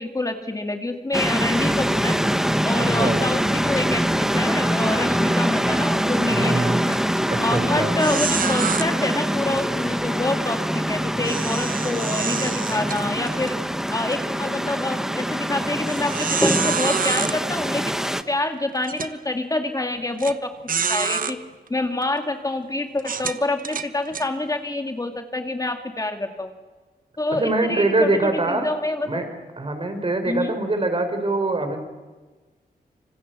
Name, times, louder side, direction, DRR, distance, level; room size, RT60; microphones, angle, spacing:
voice 1, 0.0-2.2 2.6-7.0 7.4-13.6 13.9-20.5 20.9-21.4 21.7-26.5 27.2-28.1 28.5-29.2 30.3-30.5, left 2 dB, 20° left, 5 dB, 1.9 m, -27 dB
sound 1, 1.1-18.2, equal, 5° right, 1.1 m, -24 dB
voice 2, 2.8-3.2 6.3-6.8 7.3-7.9 27.3-28.7 29.1-29.3 29.6-31.8, right 2 dB, 35° right, 7 dB, 4.8 m, -23 dB
sound 2, 6.9-7.2 7.5-7.6 8.0-8.8 11.2-13.5 14.0-14.2 14.8-14.9 15.9-17.3 18.2-18.3 18.8-19.1 20.2-20.3 20.7-21.3 22.0-22.2 23.0-24.3, right 6 dB, 60° right, 1.2 m, -27 dB
26.5 x 26.0 x 8.1 m, 1.3 s
wide cardioid pair, 135°, 16 cm